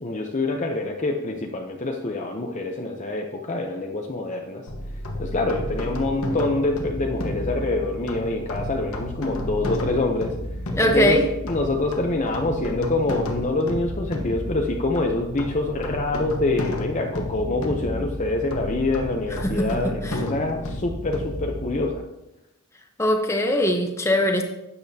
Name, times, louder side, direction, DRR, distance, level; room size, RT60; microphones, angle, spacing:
voice 1, 0.0-4.7 5.2-10.3 10.8-22.0, left 2 dB, 35° left, 2 dB, 0.7 m, -26 dB
sound 1, 4.7-21.9, left 1 dB, 70° left, 1.2 m, -32 dB
voice 2, 10.7-11.2 20.0-20.2 23.0-24.4, left 1 dB, 10° left, 2 dB, 1.0 m, -21 dB
12.0 x 8.6 x 2.8 m, 0.91 s
head